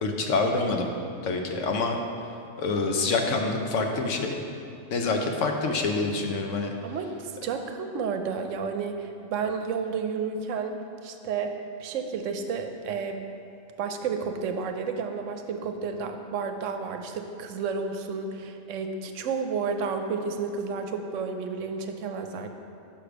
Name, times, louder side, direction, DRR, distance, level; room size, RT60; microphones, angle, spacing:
voice 1, 0.0-0.9 1.2-2.0 2.6-4.4 4.9-6.7, left 3 dB, 75° left, 3 dB, 1.0 m, -26 dB
voice 2, 6.8-10.8 11.0-13.3 13.8-22.5, right 5 dB, 80° right, 6 dB, 0.9 m, -31 dB
5.4 x 5.0 x 5.9 m, 2.6 s
omnidirectional pair, 1.3 m